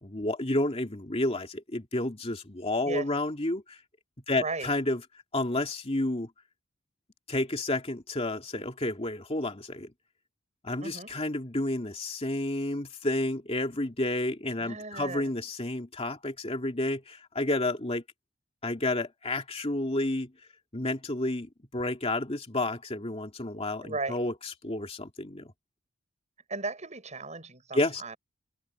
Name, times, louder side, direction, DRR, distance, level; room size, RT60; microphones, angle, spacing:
voice 1, 0.0-3.8 4.3-5.0 5.3-6.3 7.3-9.9 10.6-18.0 18.6-20.3 20.7-24.3 24.6-25.5 27.7-28.0, left 2 dB, 30° left, 2.5 m, -30 dB
voice 2, 4.3-4.7 10.8-11.1 14.6-15.3 23.8-24.2 26.5-28.2, right 3 dB, 35° right, 6.8 m, -36 dB
open air
head